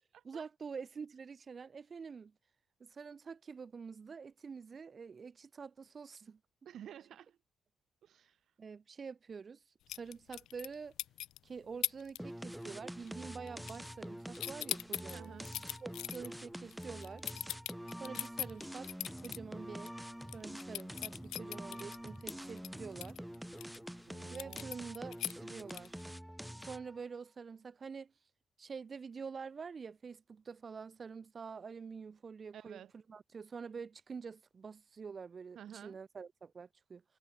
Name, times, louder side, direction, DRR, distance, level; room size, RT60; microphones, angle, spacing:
voice 1, 0.2-2.3 2.8-6.4 8.6-9.6 9.9-10.9 11.4-15.3 15.8-17.2 18.0-18.9 19.2-20.0 20.3-23.2 24.3-26.0 26.6-28.1 28.6-32.8 33.1-37.0, right 5 dB, 40° right, 1.6 m, -47 dB
voice 2, 6.6-7.4 8.0-8.4 15.1-15.5 24.1-24.7 32.5-32.9 35.5-36.0, right 10 dB, 70° right, 6.5 m, -51 dB
sound 1, 9.9-10.7 11.0-11.4 11.8-12.2 12.5-12.8 13.1-14.1 14.3-19.4 19.8-19.9 20.2-23.8 24.4-26.0, left 13 dB, 80° left, 1.7 m, -40 dB
sound 2, 12.2-27.0, equal, ahead, 0.7 m, -46 dB
cardioid pair, 90°, 0 cm